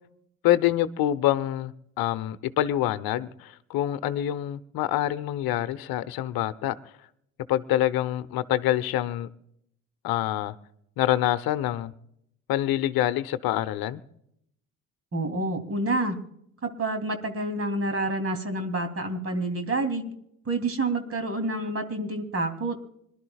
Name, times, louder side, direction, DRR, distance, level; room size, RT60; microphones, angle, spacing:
voice 1, 0.4-6.7 7.5-9.3 10.0-10.5 11.0-11.9 12.5-14.0, left 13 dB, 55° left, 1.0 m, -26 dB
voice 2, 15.1-16.2 16.8-20.1 20.4-22.7, right 2 dB, 35° right, 3.1 m, -28 dB
26.0 x 12.0 x 2.4 m
hypercardioid pair, 55°, 42 cm